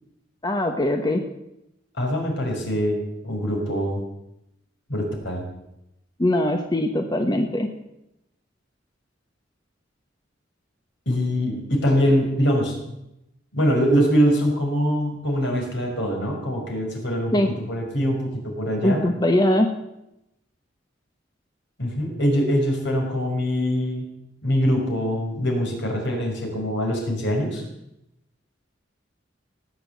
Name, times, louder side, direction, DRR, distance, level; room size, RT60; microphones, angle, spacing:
voice 1, 0.4-1.2 6.2-7.7 17.3-17.5 18.8-19.7, left 1 dB, 20° left, 4 dB, 1.1 m, -21 dB
voice 2, 2.0-4.0 4.9-5.4 11.1-12.7 13.5-17.3 17.7-19.0 21.8-24.0 24.4-27.6, equal, 65° left, 1 dB, 5.5 m, -23 dB
18.5 x 9.2 x 8.3 m, 0.88 s
head